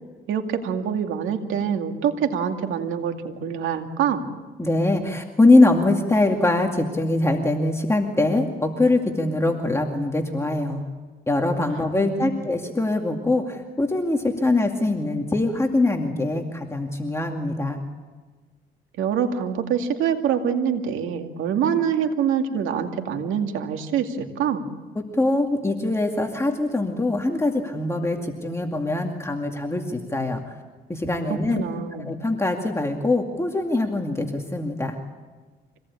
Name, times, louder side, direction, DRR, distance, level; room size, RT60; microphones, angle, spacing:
voice 1, 0.3-4.2 11.7-12.4 19.0-24.7 31.6-32.1, right 8 dB, 85° right, 5 dB, 2.4 m, -25 dB
voice 2, 4.6-10.8 11.3-17.8 25.0-30.5 30.9-31.6 32.1-35.0, left 2 dB, 15° left, 2 dB, 2.3 m, -22 dB
25.5 x 18.0 x 8.5 m, 1.3 s
cardioid pair, 90°, 20 cm